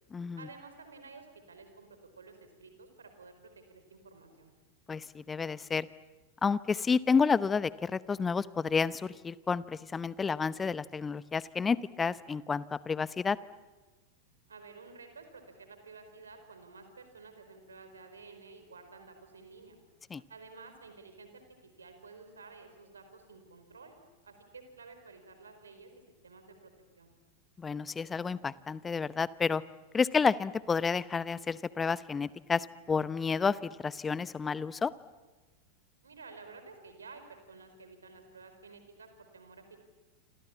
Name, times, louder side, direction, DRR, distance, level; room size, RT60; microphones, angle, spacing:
voice 1, 0.4-4.5 14.5-19.8 20.3-24.0 24.2-25.9 26.2-27.1 36.0-39.8, right 4 dB, 70° right, 8 dB, 4.6 m, -52 dB
voice 2, 4.9-5.9 6.4-13.4 20.1-20.2 27.6-29.6 29.9-34.9, left 5 dB, 15° left, 19 dB, 0.8 m, -30 dB
28.0 x 27.0 x 7.3 m, 1.2 s
figure-of-eight pair, 90°, 0 cm